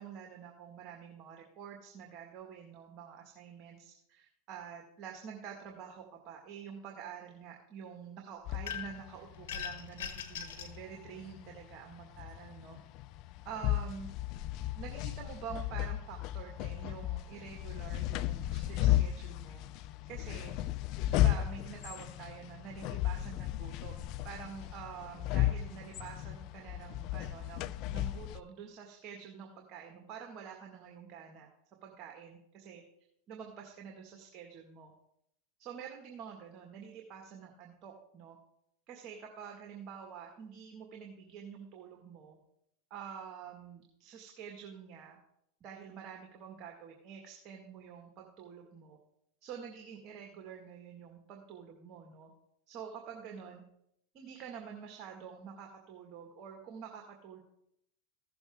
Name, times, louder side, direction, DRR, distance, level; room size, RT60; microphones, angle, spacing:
voice 1, 0.0-12.8 13.4-14.1 14.8-19.6 20.1-20.6 21.1-31.5 31.8-32.8 33.3-34.9 35.6-38.4 38.9-42.4 42.9-45.2 45.6-49.0 49.4-52.3 52.7-53.6 54.1-57.4, right 7 dB, 45° right, 1 dB, 1.7 m, -47 dB
sound 1, 8.5-28.4, left 14 dB, 50° left, 0.4 m, -35 dB
sound 2, 8.7-9.1 9.5-10.8, left 8 dB, 75° left, 1.3 m, -40 dB
15.5 x 6.9 x 3.6 m, 0.76 s
hypercardioid pair, 105°, 0 cm